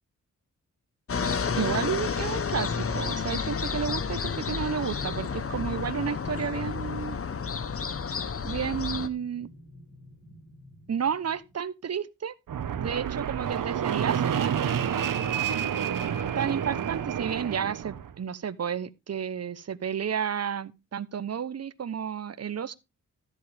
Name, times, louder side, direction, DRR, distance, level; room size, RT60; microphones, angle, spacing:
sound 1, 1.1-9.1, left 6 dB, 45° left, 1.0 m, -31 dB
voice 1, 1.6-7.2 8.4-9.5 10.9-12.3 12.8-15.3 16.3-22.8, right 7 dB, 55° right, 0.9 m, -32 dB
sound 2, 3.5-11.5, left 1 dB, 75° left, 5.3 m, -52 dB
Fixed-wing aircraft airplane, 12.5-18.1, right 8 dB, 85° right, 1.2 m, -29 dB
13.5 x 7.6 x 3.4 m
cardioid pair, 80°, 31 cm